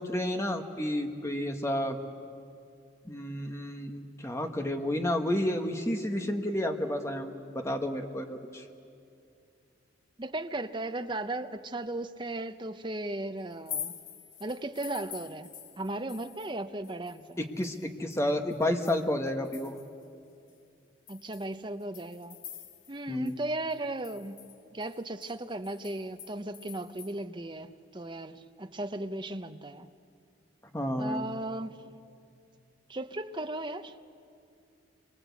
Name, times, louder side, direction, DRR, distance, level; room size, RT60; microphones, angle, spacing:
voice 1, 0.0-2.0 3.0-8.6 17.4-19.7 23.1-23.4 30.7-31.2, left 1 dB, 15° left, 1.4 m, -31 dB
voice 2, 10.2-13.9 14.4-15.5 15.8-17.4 21.1-22.4 22.9-24.4 24.7-29.9 31.0-31.8 32.9-34.0, right 2 dB, 25° right, 0.8 m, -36 dB
sound 1, 13.5-16.6 16.8-20.0 20.5-20.6 21.1-23.0 23.3-23.4 23.7-27.1, left 8 dB, 75° left, 2.4 m, -45 dB
28.0 x 24.0 x 8.4 m
head